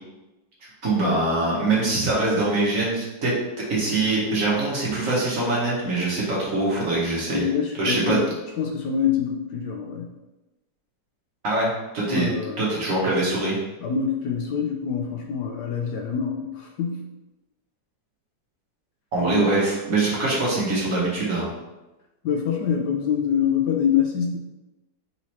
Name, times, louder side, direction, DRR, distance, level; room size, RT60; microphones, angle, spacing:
voice 1, 0.8-3.3 3.7-7.4 7.8-8.2 11.4-12.3 12.6-13.6 19.1-21.5, right 2 dB, 50° right, -5 dB, 1.3 m, -23 dB
voice 2, 7.3-8.3 8.6-10.1 12.1-12.6 13.8-17.1 19.2-19.5 22.2-24.4, left 7 dB, 70° left, 1 dB, 1.1 m, -25 dB
4.1 x 3.0 x 4.1 m, 1.1 s
omnidirectional pair, 2.0 m